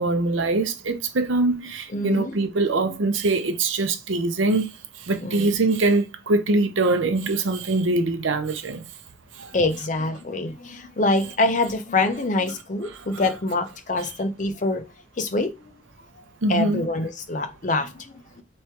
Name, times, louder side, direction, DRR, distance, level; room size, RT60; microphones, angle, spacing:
voice 1, 0.0-4.7 5.1-8.9 9.4-9.5 12.9-13.1 16.4-16.8, right 2 dB, 85° right, 0.7 m, -23 dB
voice 2, 1.9-2.4 2.9-3.0 5.2-5.5 9.5-14.8 15.2-15.7 16.5-18.4, left 2 dB, 40° left, 0.6 m, -25 dB
3.4 x 3.2 x 4.3 m
head